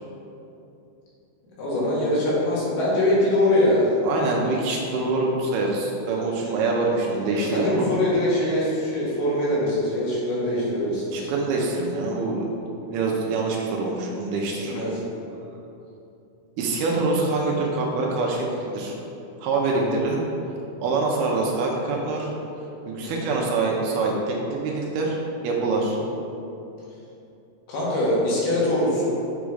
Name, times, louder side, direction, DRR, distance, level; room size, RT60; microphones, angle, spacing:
voice 1, 1.6-4.0 7.5-11.3 14.7-15.0 19.7-20.0 23.0-23.3 25.9-26.0 27.7-29.1, left 1 dB, 80° left, -7 dB, 3.9 m, -23 dB
voice 2, 4.0-7.9 11.1-12.6 12.9-14.8 16.6-19.0 19.4-20.2 20.8-22.3 22.9-25.2 25.4-26.0, right 3 dB, 85° right, -2 dB, 2.7 m, -25 dB
7.9 x 5.1 x 4.9 m, 2.8 s
omnidirectional pair, 4.4 m